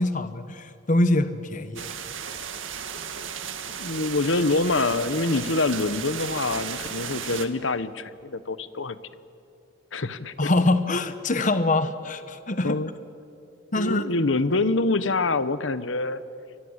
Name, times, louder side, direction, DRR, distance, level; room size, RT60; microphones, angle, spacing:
voice 1, 0.0-1.9 10.4-12.8 13.7-14.0, left 2 dB, 40° left, 11 dB, 1.2 m, -24 dB
sound 1, 1.8-7.5, right 7 dB, 85° right, 2.0 m, -35 dB
voice 2, 3.8-9.0 9.9-10.5 12.6-12.9 13.7-16.2, left 3 dB, 75° left, 14 dB, 1.1 m, -25 dB
29.5 x 24.5 x 8.2 m, 2.7 s
head